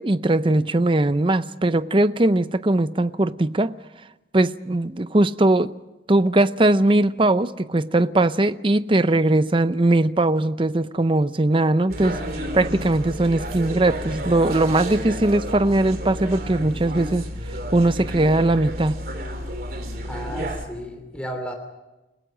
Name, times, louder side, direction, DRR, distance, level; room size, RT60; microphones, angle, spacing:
voice 1, 0.0-3.7 4.3-5.7 6.1-17.2 17.7-19.0, right 2 dB, 30° right, 0.7 m, -20 dB
sound 1, 11.9-20.7, equal, 55° right, 3.1 m, -31 dB
voice 2, 20.0-21.5, equal, 5° left, 3.0 m, -33 dB
29.5 x 17.5 x 6.3 m
head